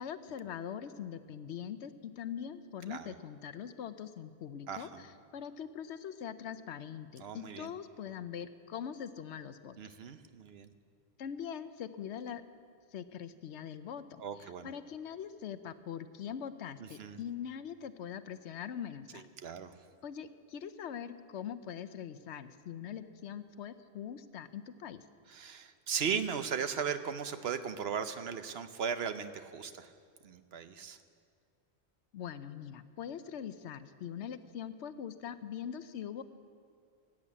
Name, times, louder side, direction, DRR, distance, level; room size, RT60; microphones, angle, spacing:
voice 1, 0.0-9.8 11.2-12.4 12.9-19.3 20.0-25.0 32.1-36.2, left 8 dB, 80° left, 12 dB, 1.0 m, -42 dB
voice 2, 4.7-5.0 7.2-7.7 9.8-10.7 14.2-14.7 16.8-17.2 19.1-19.7 25.3-29.9 30.2-31.0, right 7 dB, 65° right, 10 dB, 0.9 m, -37 dB
16.5 x 8.7 x 8.5 m, 2.2 s
omnidirectional pair, 1.2 m